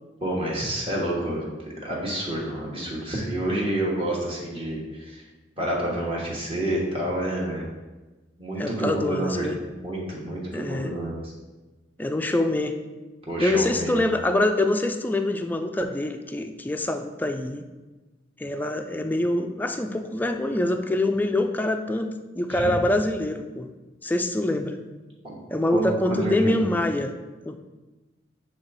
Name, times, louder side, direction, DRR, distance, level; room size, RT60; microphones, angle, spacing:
voice 1, 0.2-1.4 1.8-5.2 5.6-7.6 8.4-9.5 9.8-11.2 13.3-14.0 25.2-25.4 25.7-25.8 26.1-26.6, right 1 dB, 30° right, -4 dB, 1.2 m, -28 dB
voice 2, 8.6-9.6 10.5-10.9 12.0-12.8 13.4-17.7 18.4-23.7 24.0-24.8 25.5-27.1 27.5-27.6, left 1 dB, 10° left, 6 dB, 0.3 m, -25 dB
7.1 x 3.3 x 4.0 m, 1.2 s
head